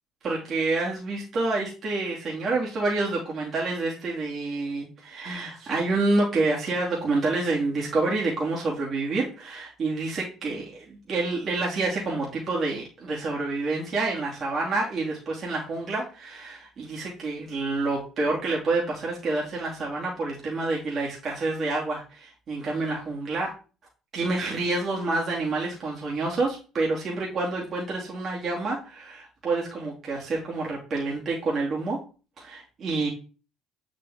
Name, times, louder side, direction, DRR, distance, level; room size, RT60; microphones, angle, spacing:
voice 1, 0.2-23.5 24.1-32.0 32.4-33.1, right 3 dB, 45° right, -3 dB, 2.6 m, -28 dB
8.5 x 5.2 x 3.7 m, 0.34 s
hypercardioid pair, 55°, 0 cm